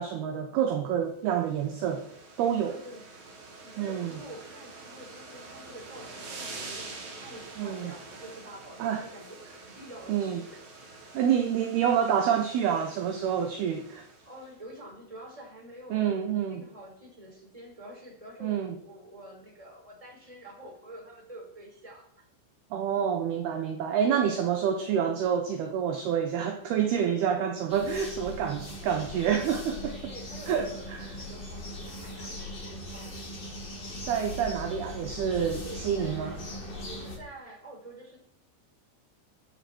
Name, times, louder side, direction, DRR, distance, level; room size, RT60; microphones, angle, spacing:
voice 1, 0.0-2.1 2.4-2.8 3.8-4.1 7.6-7.9 8.8-9.0 10.1-10.4 11.1-14.0 15.9-16.6 18.4-18.7 22.7-30.1 30.5-31.1 34.1-36.4, right 8 dB, 70° right, 2.6 m, -28 dB
sound 1, 1.3-14.5, right 3 dB, 40° right, 4.0 m, -46 dB
voice 2, 2.6-3.1 3.6-6.9 7.2-10.6 14.2-16.2 16.5-22.3 26.8-27.2 29.8-33.3 35.6-36.4 36.8-38.2, right 1 dB, 5° right, 4.7 m, -48 dB
sound 2, 27.7-37.2, left 1 dB, 25° left, 5.3 m, -39 dB
16.5 x 14.0 x 4.6 m
omnidirectional pair, 5.7 m